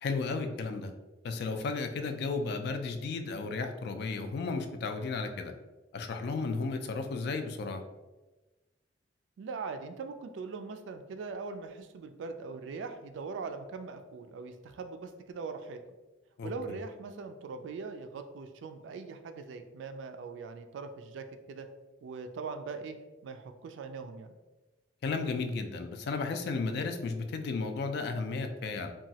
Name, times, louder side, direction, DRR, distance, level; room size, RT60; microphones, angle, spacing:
voice 1, 0.0-0.9 1.2-5.5 5.9-7.8 16.4-16.8 25.0-28.9, left 4 dB, 60° left, 7 dB, 0.3 m, -34 dB
voice 2, 9.4-15.8 16.4-21.7 22.0-23.0 23.2-24.3, right 4 dB, 75° right, 8 dB, 0.3 m, -41 dB
2.9 x 2.3 x 2.7 m, 1.1 s
head